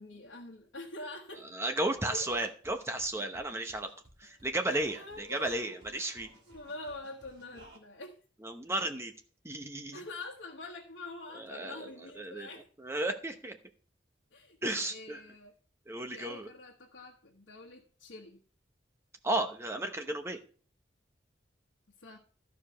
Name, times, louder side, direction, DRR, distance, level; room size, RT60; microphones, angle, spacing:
voice 1, 0.0-1.7 2.1-2.3 4.9-5.7 6.5-8.2 9.9-12.7 14.3-15.5 16.1-18.4 22.0-22.2, left 2 dB, 80° left, -1 dB, 1.3 m, -45 dB
voice 2, 1.5-3.9 4.2-6.3 8.4-9.1 9.4-10.0 11.4-11.9 12.2-12.5 12.8-13.6 14.6-15.2 15.9-16.5 19.2-20.4, right 1 dB, 15° right, 5 dB, 0.8 m, -34 dB
sound 1, 2.0-7.8, right 1 dB, 60° right, 2.9 m, -58 dB
14.0 x 4.9 x 5.7 m, 0.42 s
head